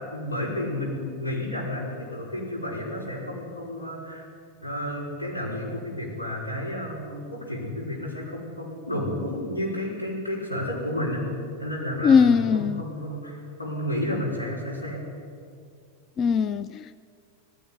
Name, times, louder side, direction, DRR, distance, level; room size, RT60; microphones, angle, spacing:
voice 1, 0.0-4.3 4.6-11.3 11.6-15.0, left 1 dB, 80° left, -1 dB, 5.7 m, -31 dB
voice 2, 12.0-12.8 16.2-17.0, left 6 dB, 30° left, 13 dB, 0.5 m, -20 dB
19.0 x 16.5 x 9.7 m, 2.2 s
figure-of-eight pair, 90°, 0 cm